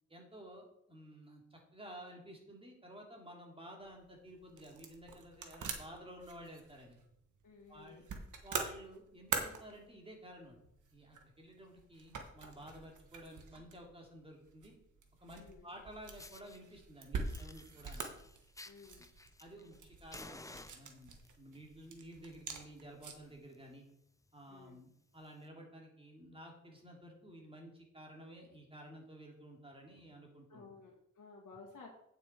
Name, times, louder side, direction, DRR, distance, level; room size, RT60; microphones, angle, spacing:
voice 1, 0.1-7.0 7.7-8.0 8.4-10.6 10.9-14.7 15.2-18.1 19.4-23.8 24.3-30.6, right 1 dB, 20° right, 0 dB, 2.6 m, -53 dB
sound 1, 3.8-23.4, right 5 dB, 80° right, 1.4 m, -46 dB
voice 2, 7.4-8.1 15.3-15.7 18.6-19.1 24.5-24.8 30.5-31.9, left 4 dB, 80° left, -4 dB, 1.9 m, -55 dB
Fire, 15.7-15.8 16.2-16.6 17.2-19.8 20.1-21.3 22.1-22.4 22.7-22.8 23.2-23.3 23.5-23.7 24.3-24.4 25.3-25.4, left 2 dB, 10° left, 0.5 m, -54 dB
9.0 x 6.8 x 4.5 m, 0.77 s
wide cardioid pair, 95°, 30 cm